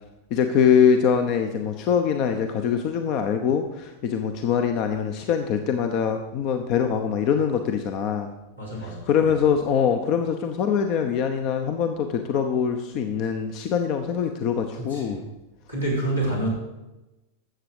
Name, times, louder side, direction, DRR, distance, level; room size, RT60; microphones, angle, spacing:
voice 1, 0.3-8.3 8.8-15.2, left 7 dB, 40° left, 6 dB, 0.8 m, -23 dB
voice 2, 8.6-9.4 14.8-15.2 15.7-16.5, right 1 dB, 85° left, -5 dB, 4.5 m, -28 dB
12.5 x 7.8 x 4.9 m, 1.0 s
figure-of-eight pair, 90°, 0 cm